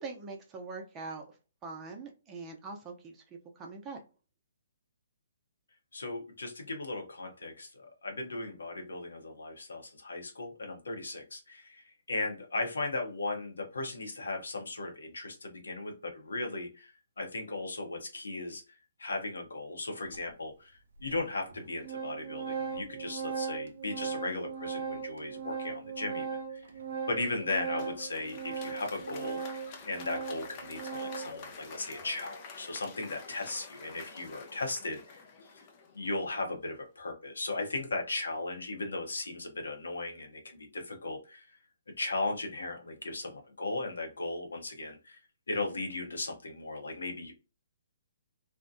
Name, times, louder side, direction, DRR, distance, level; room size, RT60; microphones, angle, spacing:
voice 1, 0.0-1.4 1.6-4.0, right 4 dB, 20° right, 1 dB, 0.6 m, -43 dB
voice 2, 5.9-26.7 27.1-35.2 35.5-35.7 35.9-41.6 42.0-45.2 45.5-47.3, left 2 dB, 80° left, 2 dB, 0.8 m, -37 dB
Organ, 20.1-20.2 21.1-21.2 21.5-31.4, right 6 dB, 65° right, 0.5 m, -38 dB
Applause, 27.2-36.5, left 5 dB, 35° left, 0.5 m, -49 dB
2.6 x 2.1 x 2.5 m, 0.32 s
hypercardioid pair, 140°, 0 cm